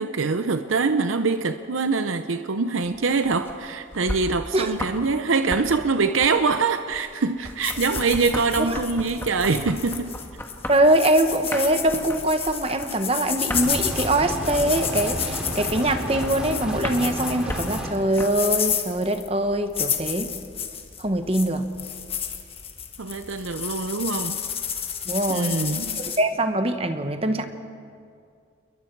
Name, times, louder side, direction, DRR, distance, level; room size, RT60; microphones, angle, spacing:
voice 1, 0.0-10.2 23.0-24.4 25.3-26.1, right 4 dB, 80° right, 9 dB, 0.7 m, -24 dB
sound 1, 2.8-5.1 5.3-18.7, left 1 dB, 10° left, 1.4 m, -36 dB
sound 2, 7.6-26.2, left 8 dB, 30° left, 1.3 m, -31 dB
voice 2, 10.7-20.3 21.0-21.7 25.1-25.6 26.0-27.4, right 1 dB, 30° right, 8 dB, 1.1 m, -23 dB
sound 3, 13.5-17.9, equal, 5° right, 2.7 m, -31 dB
28.5 x 22.0 x 4.6 m, 2.3 s
head